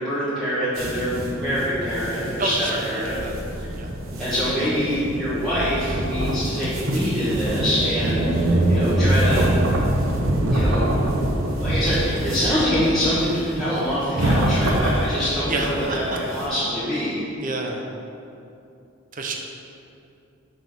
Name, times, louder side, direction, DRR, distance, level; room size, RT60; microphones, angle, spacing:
voice 1, 0.0-3.2 3.6-3.7 4.2-9.5 10.5-11.1 11.6-17.2, equal, ahead, -14 dB, 1.4 m, -25 dB
sound 1, 0.8-16.5, right 1 dB, 90° right, 0.9 m, -24 dB
voice 2, 2.4-3.4 3.7-3.9 15.5-16.0 17.4-17.8 19.1-19.3, right 3 dB, 40° right, 2 dB, 0.7 m, -28 dB
6.0 x 5.3 x 5.9 m, 2.7 s
head